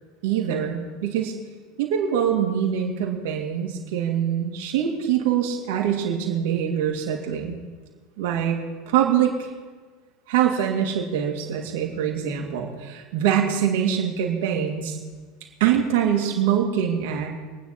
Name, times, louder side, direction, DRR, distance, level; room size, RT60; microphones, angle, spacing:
voice 1, 0.2-1.3 1.8-7.6 8.2-8.6 8.9-9.3 10.3-15.0 15.6-17.3, right 9 dB, 65° right, 0 dB, 2.7 m, -24 dB
25.0 x 9.4 x 4.3 m, 1.4 s
hypercardioid pair, 75°, 0 cm